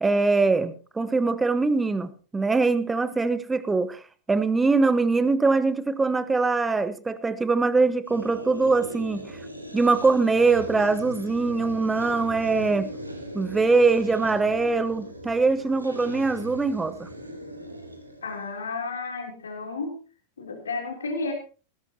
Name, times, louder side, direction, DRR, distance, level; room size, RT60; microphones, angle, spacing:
voice 1, 0.0-4.0 4.3-9.4 9.7-12.9 13.3-17.1, right 3 dB, 10° right, 14 dB, 1.3 m, -22 dB
sound 1, 8.1-18.5, right 1 dB, 85° right, 2.9 m, -39 dB
voice 2, 18.2-20.0 20.4-21.3, left 3 dB, 70° left, 2 dB, 3.5 m, -32 dB
18.5 x 16.5 x 2.9 m, 0.36 s
figure-of-eight pair, 90°, 0 cm